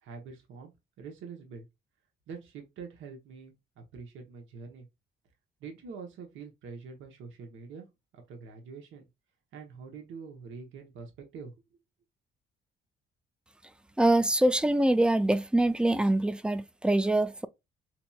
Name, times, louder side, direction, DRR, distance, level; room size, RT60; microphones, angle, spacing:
voice 1, 0.0-1.7 2.3-4.9 5.6-7.9 8.1-9.1 9.5-11.5, right 5 dB, 80° right, 0.9 m, -45 dB
voice 2, 14.0-17.5, right 1 dB, 5° right, 0.3 m, -24 dB
4.2 x 2.9 x 2.3 m
cardioid pair, 90°, 20 cm